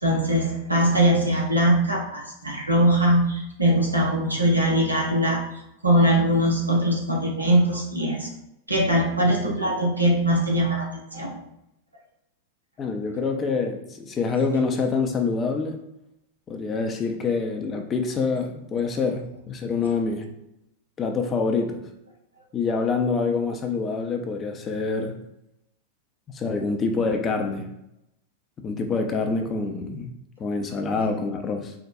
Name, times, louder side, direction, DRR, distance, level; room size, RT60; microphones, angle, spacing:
voice 1, 0.0-5.5 5.8-8.3 8.7-11.4 30.9-31.0, right 1 dB, 85° right, -1 dB, 0.8 m, -21 dB
voice 2, 12.8-15.9 16.5-20.3 21.0-21.8 22.5-25.2 26.3-27.7 28.6-30.1 30.4-31.7, left 4 dB, 25° left, 3 dB, 0.5 m, -26 dB
4.6 x 2.2 x 2.6 m, 0.84 s
figure-of-eight pair, 90°, 0 cm